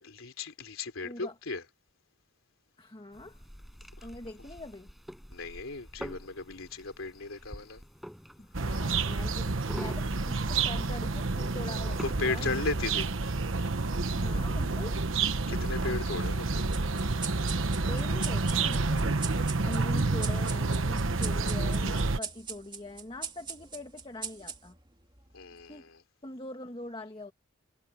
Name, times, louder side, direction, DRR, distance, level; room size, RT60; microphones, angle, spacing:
voice 1, 0.0-1.6 5.3-7.8 12.0-13.1 15.5-16.7 25.3-26.0, left 3 dB, 85° left, 3.2 m, -36 dB
voice 2, 1.0-1.4 2.8-3.4 4.0-4.9 8.4-12.8 14.1-15.0 17.9-24.8 25.5-25.9 26.2-27.3, left 1 dB, 25° left, 1.5 m, -43 dB
sound 1, 3.1-12.1, equal, ahead, 6.2 m, -47 dB
sound 2, 8.5-22.2, right 3 dB, 70° right, 1.1 m, -29 dB
sound 3, 16.7-25.6, right 6 dB, 25° right, 3.0 m, -42 dB
head